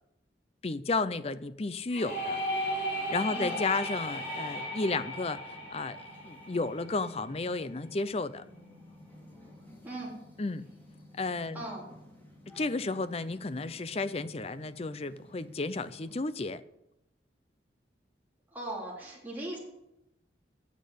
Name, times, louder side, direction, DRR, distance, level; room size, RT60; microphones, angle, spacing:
voice 1, 0.6-2.4 3.1-6.0 6.2-8.4 10.4-10.7 11.2-11.6 12.6-16.6, left 3 dB, 35° left, 14 dB, 0.5 m, -33 dB
sound 1, 1.9-7.6, equal, 65° left, 3.3 m, -36 dB
sound 2, 2.3-16.2, left 1 dB, 10° left, 3.2 m, -54 dB
voice 2, 3.3-3.6 9.8-10.1 11.5-11.8 18.5-19.6, right 1 dB, 10° right, -5 dB, 3.8 m, -38 dB
10.0 x 7.6 x 8.3 m, 0.85 s
head